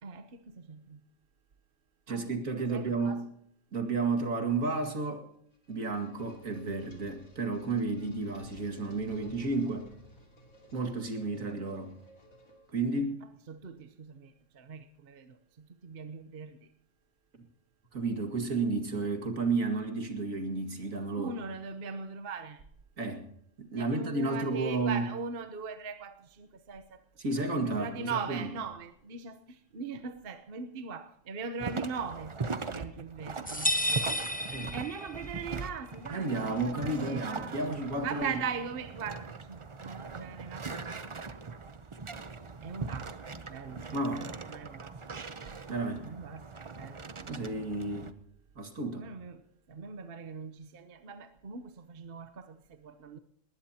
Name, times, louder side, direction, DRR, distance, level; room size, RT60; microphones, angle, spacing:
voice 1, 0.0-1.0 2.1-3.2 13.5-16.6 21.2-22.6 23.8-27.0 27.5-32.4 32.7-33.7 34.7-37.6 38.0-41.6 42.6-43.2 43.5-45.0 45.5-45.6 46.0-47.3 48.9-53.2, right 5 dB, 45° right, 1.1 m, -40 dB
voice 2, 2.1-3.3 3.7-5.3 5.7-9.9 10.7-12.0 12.7-13.2 17.9-21.4 23.0-23.3 23.6-25.1 27.2-28.5 34.5-34.8 36.1-38.4 43.9-44.3 45.7-46.1 47.3-48.1 48.6-49.1, right 3 dB, 75° right, 2.6 m, -32 dB
sound 1, 5.3-13.0, equal, 75° left, 3.6 m, -54 dB
sound 2, 31.6-48.1, right 4 dB, 30° right, 0.6 m, -41 dB
sound 3, 33.5-35.4, left 1 dB, 10° left, 0.8 m, -31 dB
20.0 x 19.0 x 2.9 m
omnidirectional pair, 1.4 m